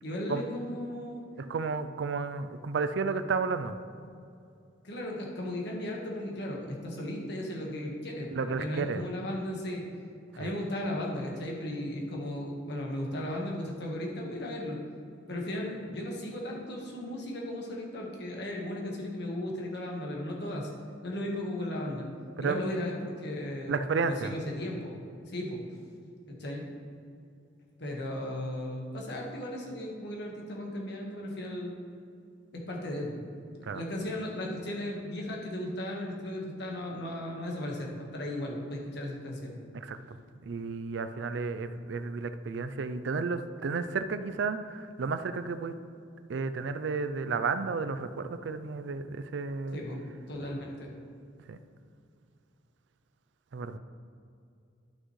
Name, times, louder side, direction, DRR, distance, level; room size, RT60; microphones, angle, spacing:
voice 1, 0.0-1.2 4.8-9.8 10.3-14.8 15.3-20.7 21.0-22.1 22.4-25.0 25.3-25.6 26.3-26.6 27.8-31.7 32.5-33.2 33.6-39.6 49.7-50.0 50.3-50.9, left 1 dB, 65° left, -1 dB, 1.5 m, -36 dB
voice 2, 1.4-3.8 8.3-9.0 10.4-10.5 22.4-22.6 23.7-24.3 33.6-33.8 39.7-40.2 40.4-45.8 46.3-49.8 51.5-51.6 53.5-53.8, right 4 dB, 70° right, 10 dB, 0.4 m, -32 dB
11.5 x 6.2 x 3.2 m, 2.5 s
head